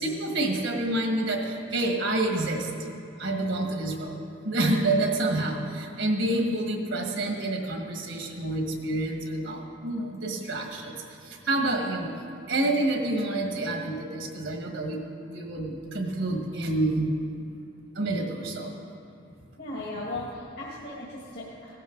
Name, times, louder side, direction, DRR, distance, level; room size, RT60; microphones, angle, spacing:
voice 1, 0.0-2.7 3.2-4.2 4.4-12.1 12.5-15.0 15.2-17.1 17.4-17.5 17.9-18.7, right 2 dB, 70° right, 2 dB, 1.6 m, -28 dB
voice 2, 19.6-21.7, left 2 dB, 60° left, -5 dB, 1.8 m, -37 dB
16.0 x 12.0 x 3.9 m, 2.5 s
head